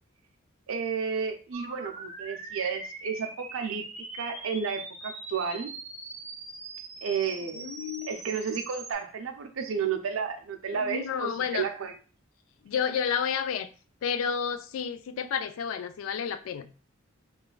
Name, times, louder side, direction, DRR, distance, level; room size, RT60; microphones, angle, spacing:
voice 1, 0.7-5.7 7.0-7.7 8.1-12.0, right 6 dB, 85° right, 0.5 m, -32 dB
sound 1, 1.5-8.9, right 3 dB, 35° right, 0.6 m, -42 dB
voice 2, 7.6-8.1 10.7-11.7 12.6-13.7 14.0-16.7, left 7 dB, 85° left, 0.3 m, -31 dB
3.1 x 2.3 x 2.3 m
head